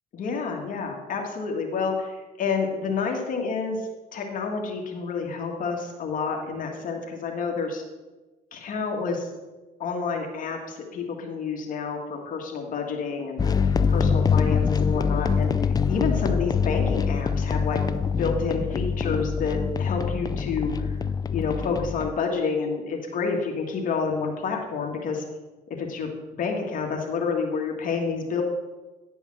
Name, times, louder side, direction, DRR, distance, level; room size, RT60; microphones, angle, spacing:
voice 1, 0.1-7.8 8.5-9.3 9.8-17.8 18.2-20.9 21.3-25.2 25.7-28.4, left 5 dB, 50° left, 2 dB, 1.7 m, -29 dB
sound 1, 13.4-22.1, left 6 dB, 25° left, 0.4 m, -24 dB
10.5 x 5.4 x 6.0 m, 1.2 s
cardioid pair, 110°, 17 cm